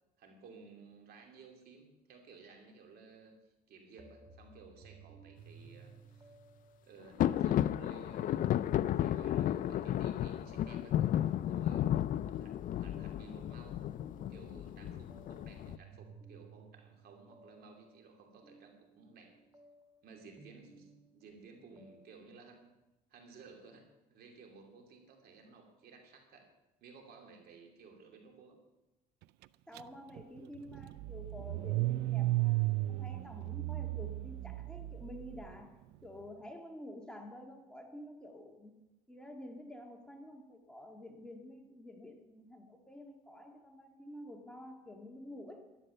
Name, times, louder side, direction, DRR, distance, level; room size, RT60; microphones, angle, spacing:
voice 1, 0.2-6.3 6.8-8.6 8.9-11.9 12.4-13.8 14.3-19.3 20.0-22.7 23.1-26.5 26.8-28.6, right 4 dB, 65° right, 3 dB, 2.9 m, -56 dB
sound 1, 3.9-22.1, right 3 dB, 20° right, 2.0 m, -59 dB
sound 2, 7.2-15.8, left 11 dB, 55° left, 0.4 m, -33 dB
voice 2, 29.7-38.8 39.1-45.7, left 1 dB, 5° left, 2 dB, 1.8 m, -50 dB
Car / Engine starting, 29.8-29.9 30.2-35.4, right 18 dB, 85° right, 0.4 m, -34 dB
12.0 x 11.0 x 6.7 m, 1.0 s
cardioid pair, 110°, 17 cm